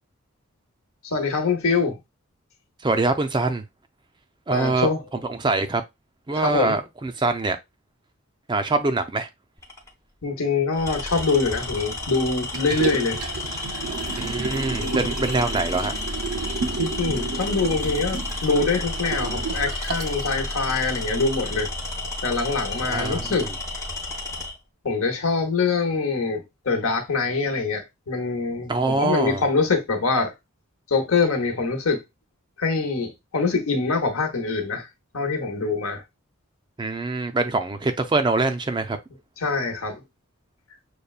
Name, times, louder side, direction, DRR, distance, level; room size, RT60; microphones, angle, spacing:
voice 1, 1.0-2.0 4.5-5.0 6.3-6.8 10.2-13.2 14.8-14.9 16.8-21.7 22.2-23.6 24.8-30.3 30.9-32.0 32.6-34.9 35.1-36.0 39.4-40.0, left 4 dB, 70° left, 1.0 m, -24 dB
voice 2, 2.8-3.6 4.5-4.9 5.3-5.8 6.3-7.6 8.5-9.3 14.2-15.9 22.9-23.3 28.7-29.4 36.8-39.0, right 3 dB, 20° right, 0.4 m, -24 dB
Tools, 9.6-9.9 10.7-24.6, left 2 dB, 15° left, 0.7 m, -31 dB
Liquid, 12.5-20.2 20.6-20.7, right 5 dB, 80° right, 0.5 m, -32 dB
6.6 x 2.2 x 2.3 m
head